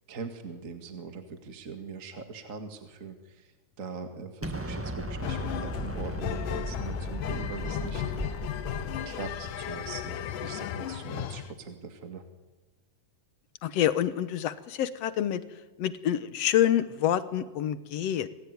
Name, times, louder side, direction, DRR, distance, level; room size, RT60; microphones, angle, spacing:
voice 1, 0.1-3.5 3.8-8.0 8.4-8.5 9.1-12.2, right 5 dB, 30° right, 6 dB, 1.8 m, -41 dB
Explosion, 4.4-10.4, equal, 10° right, 0.6 m, -37 dB
sound 1, 5.2-11.5, left 9 dB, 90° left, 2.7 m, -35 dB
voice 2, 13.6-15.4 15.8-18.3, left 11 dB, 60° left, 13 dB, 2.0 m, -27 dB
27.5 x 20.5 x 9.6 m, 1.3 s
omnidirectional pair, 3.6 m